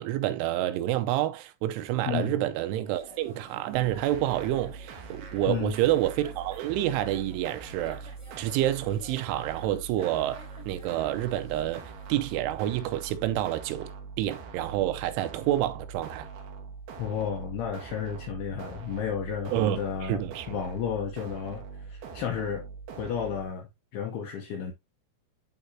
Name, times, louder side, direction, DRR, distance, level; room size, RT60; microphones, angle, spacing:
voice 1, 0.0-8.1 8.4-11.8 12.1-13.9 14.2-16.3 19.5-20.6, right 13 dB, 85° right, 3.0 m, -28 dB
voice 2, 2.1-2.4 5.5-5.8 17.0-20.2 20.5-22.6 23.0-24.7, left 8 dB, 75° left, 2.4 m, -32 dB
sound 1, 2.8-12.4, right 1 dB, 10° right, 2.2 m, -51 dB
sound 2, 3.7-23.5, right 5 dB, 65° right, 2.9 m, -43 dB
11.0 x 4.1 x 2.7 m
omnidirectional pair, 5.6 m